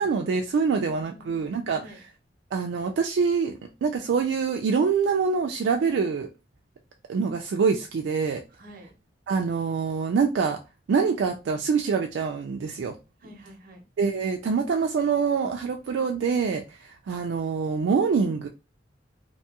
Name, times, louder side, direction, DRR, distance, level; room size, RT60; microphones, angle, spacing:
voice 1, 0.0-1.8 2.5-3.5 3.8-6.3 7.1-8.4 9.3-10.6 10.9-12.9 14.0-18.5, right 5 dB, 80° right, 0.3 m, -25 dB
voice 2, 0.7-2.0 8.5-8.9 13.2-13.8, equal, 55° right, 0.7 m, -48 dB
2.6 x 2.3 x 2.8 m
head